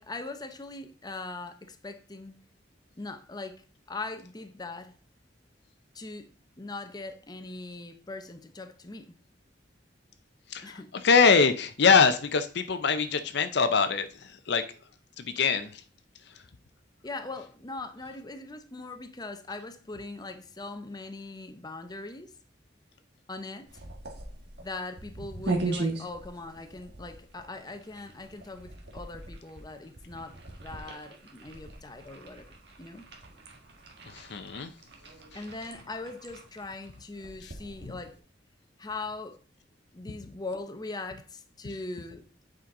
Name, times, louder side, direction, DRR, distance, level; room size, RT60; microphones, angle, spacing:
voice 1, 0.0-2.4 3.0-4.9 5.9-6.3 6.6-9.2 10.6-10.9 17.0-22.3 23.3-23.7 24.6-32.4 32.8-33.1 35.3-38.2 38.8-39.4 39.9-42.3, left 3 dB, 20° left, 0.7 m, -40 dB
voice 2, 10.5-14.7 15.2-15.8 34.1-34.7 37.4-37.5, left 5 dB, 65° left, 0.7 m, -24 dB
sound 1, 23.7-38.2, right 3 dB, 65° right, 1.5 m, -39 dB
8.6 x 5.1 x 3.8 m
head